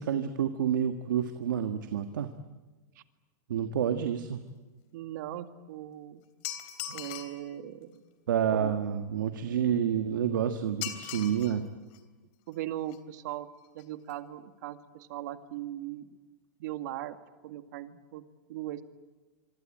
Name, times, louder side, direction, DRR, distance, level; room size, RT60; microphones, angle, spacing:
voice 1, 0.0-2.3 3.5-4.4 6.9-7.0 8.3-11.6, right 9 dB, 85° right, 7 dB, 1.6 m, -29 dB
voice 2, 4.9-6.2 6.9-7.9 8.5-8.7 12.5-13.5 13.7-16.2 16.6-17.2 17.4-18.2 18.5-18.8, right 13 dB, 65° right, 8 dB, 2.1 m, -39 dB
sound 1, 6.4-7.4 10.8-11.6 11.9-12.0 12.9-13.0 13.3-13.4 13.6-13.8 14.1-14.2, left 12 dB, 50° left, 3.3 m, -39 dB
26.0 x 24.5 x 9.0 m, 1.3 s
hypercardioid pair, 130°, 10 cm